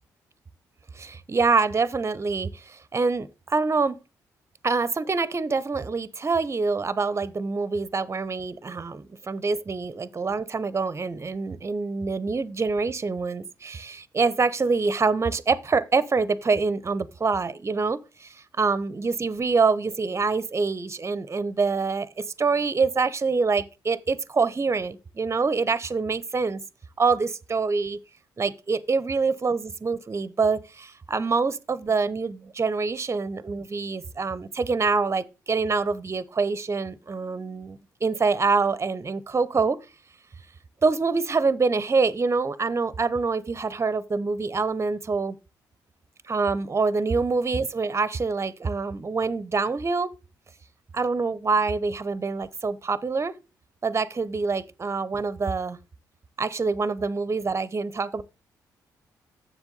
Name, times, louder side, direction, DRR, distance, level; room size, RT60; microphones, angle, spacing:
voice 1, 1.0-4.0 4.6-22.1 22.4-26.6 27.0-28.0 28.4-39.8 40.8-45.4 46.3-50.1 50.9-53.4 53.8-55.8 56.4-58.2, right 4 dB, 30° right, 0.7 m, -25 dB
7.1 x 7.0 x 3.9 m
hypercardioid pair, 45°, 9 cm